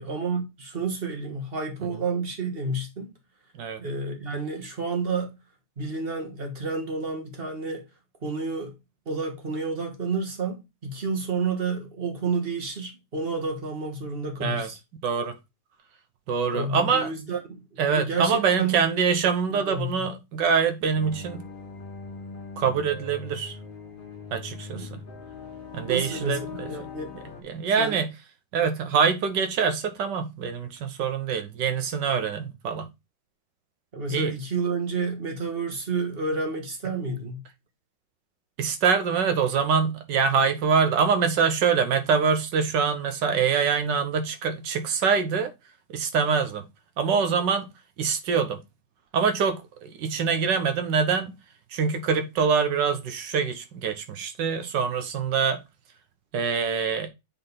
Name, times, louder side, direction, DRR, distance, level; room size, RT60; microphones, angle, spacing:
voice 1, 0.0-3.1 3.8-5.4 5.8-7.9 8.2-8.7 9.0-14.8 16.5-18.8 19.5-20.1 24.7-25.0 25.9-26.4 26.7-27.1 27.8-28.0 33.9-37.4, right 4 dB, 35° right, 1.6 m, -30 dB
voice 2, 15.0-15.3 16.3-17.1 17.8-21.4 22.6-23.6 24.3-25.0 25.7-26.7 27.4-28.1 28.5-32.9 34.1-34.3 38.6-45.5 45.9-46.7 47.0-47.7 48.0-48.6 49.1-51.3 51.7-55.6 56.3-57.1, right 6 dB, 75° right, 1.6 m, -24 dB
sound 1, 20.9-27.4, left 5 dB, 35° left, 1.1 m, -40 dB
7.6 x 3.9 x 4.0 m
omnidirectional pair, 2.0 m